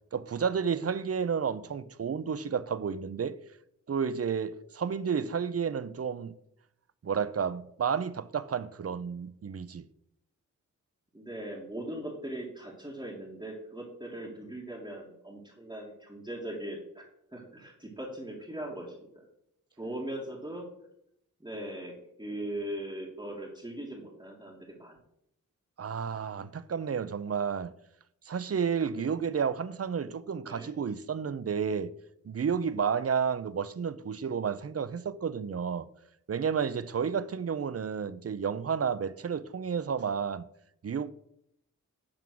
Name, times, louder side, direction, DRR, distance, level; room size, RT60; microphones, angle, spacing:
voice 1, 0.1-3.4 3.9-6.3 7.0-9.9 25.8-27.7 28.3-31.9 32.2-35.9 36.3-40.5 40.8-41.1, right 6 dB, 50° right, 0.5 m, -31 dB
voice 2, 11.1-19.3 19.8-20.7 21.4-21.9 22.2-25.0 29.0-29.1 30.4-30.7, right 1 dB, 15° right, 1.9 m, -40 dB
10.5 x 3.8 x 6.2 m
wide cardioid pair, 70°, 32 cm